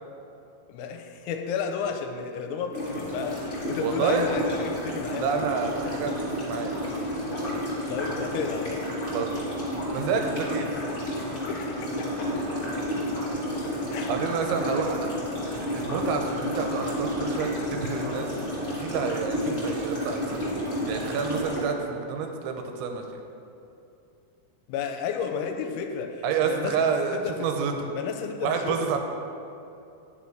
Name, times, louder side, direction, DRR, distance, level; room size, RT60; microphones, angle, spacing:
voice 1, 0.7-5.3 7.9-8.9 11.5-12.3 13.9-14.1 14.4-14.5 19.5-19.6 24.7-27.5 27.9-29.0, left 6 dB, 85° left, 5 dB, 3.0 m, -32 dB
sound 1, 2.7-21.6, equal, 35° left, 0.8 m, -31 dB
voice 2, 3.8-4.3 5.2-6.7 9.1-9.4 9.9-10.7 14.1-15.1 15.6-20.5 20.9-23.2 26.2-27.9 28.4-29.0, right 6 dB, 90° right, 4 dB, 3.1 m, -29 dB
9.6 x 6.5 x 4.5 m, 2.7 s
omnidirectional pair, 5.3 m